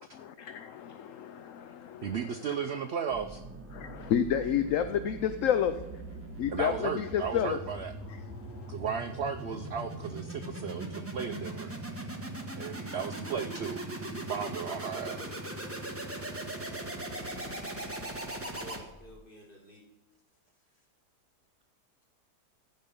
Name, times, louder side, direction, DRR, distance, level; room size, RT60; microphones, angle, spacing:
voice 1, 0.0-2.2 3.7-5.7 6.4-7.6 8.4-8.7, left 9 dB, 65° left, 10 dB, 0.8 m, -30 dB
voice 2, 2.0-3.4 6.5-7.9 8.7-11.7 12.6-15.3, right 7 dB, 65° right, 8 dB, 0.6 m, -35 dB
sound 1, 3.1-19.2, right 1 dB, 10° right, 1.1 m, -40 dB
voice 3, 18.4-19.8, equal, 30° left, -3 dB, 3.5 m, -52 dB
14.5 x 5.2 x 5.4 m, 0.99 s
omnidirectional pair, 1.8 m